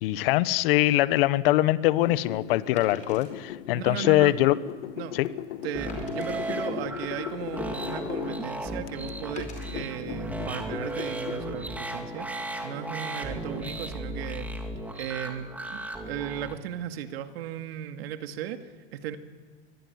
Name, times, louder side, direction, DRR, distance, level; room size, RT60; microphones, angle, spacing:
voice 1, 0.0-4.6 5.1-5.3, left 16 dB, 55° left, 16 dB, 1.2 m, -22 dB
sound 1, 2.0-8.4 8.9-11.3, left 11 dB, 80° left, 1.6 m, -38 dB
Wood, 2.8-3.3 4.0-4.1 4.6-4.7 5.9-6.4 7.1-7.9 9.4-9.7 10.4-10.6, left 5 dB, 20° left, 4.8 m, -48 dB
voice 2, 3.7-4.3 4.9-5.1 5.6-12.3 12.6-14.5 14.9-19.2, right 10 dB, 60° right, 7 dB, 2.2 m, -36 dB
sound 2, 5.7-16.5, right 1 dB, 5° right, 2.5 m, -35 dB
24.0 x 20.5 x 9.6 m, 1.5 s
supercardioid pair, 150°, 35 cm